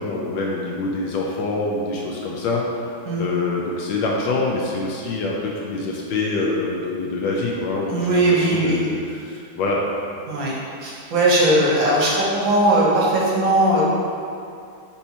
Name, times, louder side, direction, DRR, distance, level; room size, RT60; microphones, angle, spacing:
voice 1, 0.0-2.9 3.2-9.8, left 3 dB, 75° left, -2 dB, 1.2 m, -25 dB
voice 2, 7.9-8.8 10.3-10.5 10.8-13.8, right 1 dB, 70° right, -5 dB, 1.6 m, -19 dB
4.5 x 4.2 x 2.8 m, 2.4 s
omnidirectional pair, 2.2 m